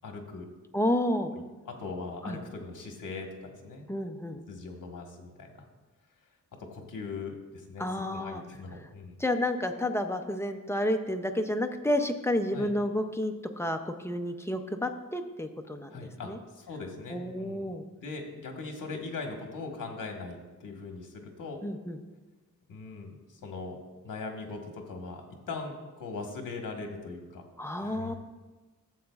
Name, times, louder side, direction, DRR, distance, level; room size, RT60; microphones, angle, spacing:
voice 1, 0.0-0.5 1.3-1.4 1.7-3.8 4.5-5.7 6.6-7.9 8.2-9.2 12.5-12.7 15.9-17.7 18.0-21.6 22.7-23.8 24.0-27.4 27.8-28.1, left 3 dB, 65° left, 2 dB, 1.4 m, -40 dB
voice 2, 0.7-1.3 2.2-2.4 3.9-4.4 7.8-8.4 8.8-8.9 9.2-16.4 17.1-17.9 21.6-22.0 27.6-28.1, left 1 dB, 10° left, 5 dB, 0.4 m, -30 dB
12.5 x 7.6 x 2.4 m, 1.2 s
wide cardioid pair, 140°, 34 cm